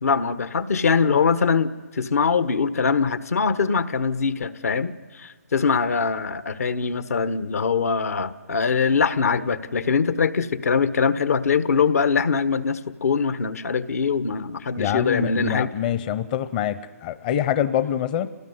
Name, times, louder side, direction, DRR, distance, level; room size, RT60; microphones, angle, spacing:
voice 1, 0.0-15.7, left 5 dB, 65° left, 13 dB, 1.4 m, -22 dB
voice 2, 14.8-18.3, left 10 dB, 30° left, 13 dB, 0.9 m, -25 dB
28.0 x 19.0 x 9.6 m, 1.5 s
hypercardioid pair, 145°, 9 cm